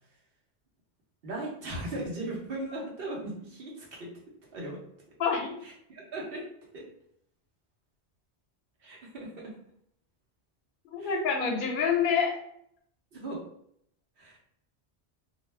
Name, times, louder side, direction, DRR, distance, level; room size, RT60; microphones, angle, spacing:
voice 1, 1.2-4.1 4.5-4.8 5.6-6.5 6.7-6.8 8.8-9.5 11.0-11.2 13.1-13.4 14.2-14.4, right 1 dB, 60° right, -2 dB, 1.0 m, -38 dB
voice 2, 5.2-5.6 10.9-12.4, left 6 dB, 55° left, 1 dB, 0.7 m, -27 dB
2.4 x 2.1 x 3.1 m, 0.70 s
omnidirectional pair, 1.2 m